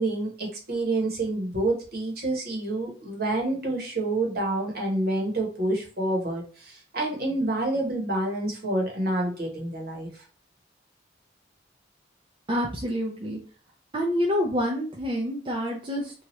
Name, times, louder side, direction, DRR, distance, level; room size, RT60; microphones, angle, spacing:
voice 1, 0.0-10.2, right 2 dB, 55° right, 0 dB, 1.0 m, -28 dB
voice 2, 12.5-13.4 13.9-16.1, equal, 25° right, -1 dB, 0.4 m, -27 dB
2.8 x 2.3 x 3.0 m, 0.40 s
head